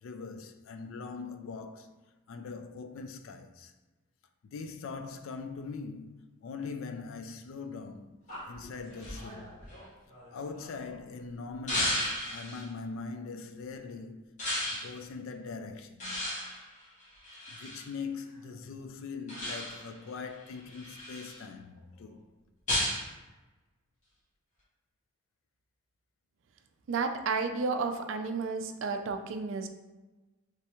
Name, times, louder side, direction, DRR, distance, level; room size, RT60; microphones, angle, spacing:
voice 1, 0.0-2.0 2.3-3.7 4.4-8.2 8.5-9.6 10.3-14.3 14.7-16.3 17.5-22.2, left 4 dB, 65° left, 0.3 m, -42 dB
sound 1, 8.3-10.9 11.7-12.7 14.4-14.9 16.0-17.9 19.3-20.0 20.5-21.4 22.7-23.1, left 1 dB, 35° left, 1.2 m, -34 dB
voice 2, 26.9-29.7, right 4 dB, 60° right, 0.3 m, -32 dB
3.3 x 3.2 x 2.9 m
head